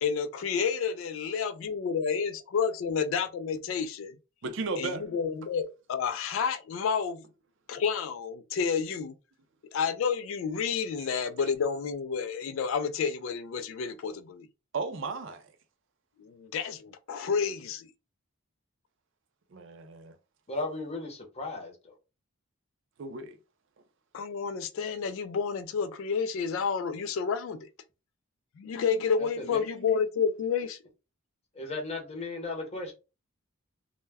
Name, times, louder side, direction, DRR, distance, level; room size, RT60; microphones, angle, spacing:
voice 1, 0.0-4.1 4.8-7.2 7.7-9.1 9.7-14.5 16.2-17.9 24.1-27.7 28.6-30.8, left 6 dB, 65° left, 0.3 m, -30 dB
voice 2, 4.4-5.1 11.0-11.1 14.7-15.5 19.5-20.1 23.0-23.4, right 3 dB, 60° right, 0.4 m, -35 dB
voice 3, 20.5-21.9 29.2-29.6 31.5-32.9, left 2 dB, 30° left, 0.7 m, -36 dB
2.1 x 2.1 x 3.3 m
head